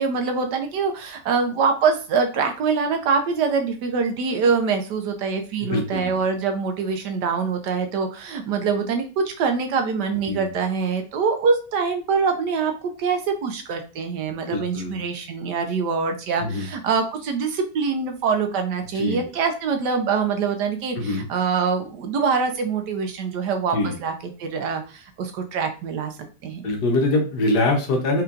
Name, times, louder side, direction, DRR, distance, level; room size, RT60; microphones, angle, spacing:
voice 1, 0.0-12.7 13.0-26.1 26.4-26.6, right 5 dB, 75° right, 5 dB, 1.3 m, -24 dB
voice 2, 5.6-6.1 10.3-10.5 14.5-14.9 16.4-16.7 18.9-19.2 21.0-21.3 23.7-24.0 26.6-28.2, left 2 dB, 70° left, 2 dB, 1.5 m, -23 dB
4.4 x 3.5 x 2.5 m, 0.35 s
omnidirectional pair, 1.9 m